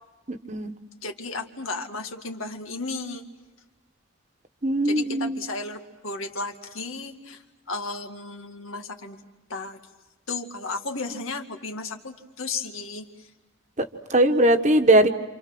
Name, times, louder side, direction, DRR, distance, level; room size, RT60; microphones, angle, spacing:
voice 1, 0.3-0.7 4.6-5.4 13.8-15.1, right 1 dB, 35° right, 7 dB, 1.2 m, -20 dB
voice 2, 1.0-3.2 4.8-7.4 7.7-9.2 9.5-9.8 10.3-13.1, left 3 dB, 90° left, 4 dB, 2.1 m, -34 dB
28.0 x 28.0 x 6.1 m, 1.1 s
head